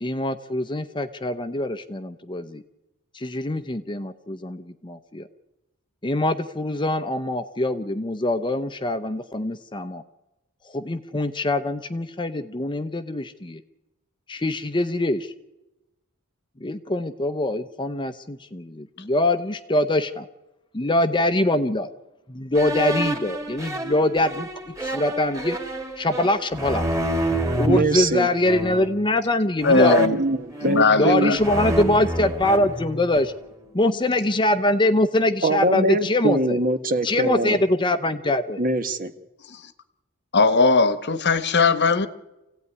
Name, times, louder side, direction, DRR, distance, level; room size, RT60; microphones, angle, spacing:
voice 1, 0.0-2.6 3.1-5.3 6.0-10.0 10.7-13.6 14.3-15.3 16.6-20.3 20.7-21.9 22.3-25.6 26.0-26.9 27.6-30.0 31.0-33.3 33.7-36.6 37.0-38.6, left 1 dB, 20° left, 10 dB, 0.8 m, -23 dB
sound 1, 22.5-27.8 28.4-29.0 29.6-31.1 31.4-33.4, right 1 dB, 15° right, 2.4 m, -28 dB
voice 2, 27.7-28.3 30.2-31.4 35.4-37.6 38.6-39.1, right 2 dB, 40° right, 10 dB, 1.4 m, -23 dB
voice 3, 29.6-30.2 30.6-31.4 40.3-42.1, left 3 dB, 55° left, 13 dB, 1.2 m, -18 dB
26.0 x 16.5 x 9.8 m, 1.0 s
head